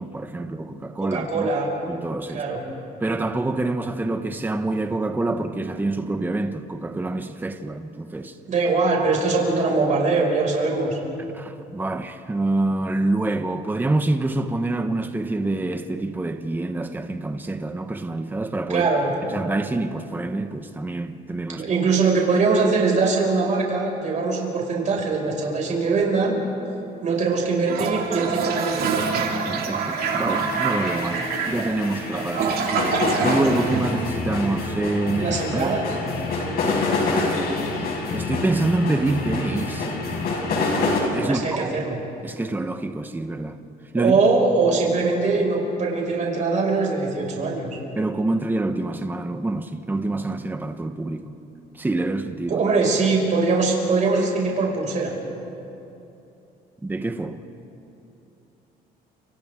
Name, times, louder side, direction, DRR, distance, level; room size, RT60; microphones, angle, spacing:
voice 1, 0.0-1.5 1.9-2.4 3.0-8.4 11.2-18.9 19.2-21.6 29.4-33.0 33.2-35.7 38.1-39.9 41.1-41.7 42.2-43.6 43.9-44.2 48.0-51.3 51.7-52.6 56.8-57.4, right 2 dB, 10° right, 0.9 m, -26 dB
voice 2, 1.1-1.7 2.3-2.6 8.5-11.0 18.7-19.1 21.5-26.4 27.0-29.1 35.2-35.9 41.2-42.0 44.0-47.8 52.5-55.1, right 4 dB, 45° right, 5.7 m, -22 dB
Toilet flush, 27.6-34.6, right 5 dB, 65° right, 2.5 m, -26 dB
sound 1, 30.0-41.0, left 3 dB, 65° left, 5.8 m, -27 dB
29.5 x 26.5 x 3.7 m
cardioid pair, 110°, 17 cm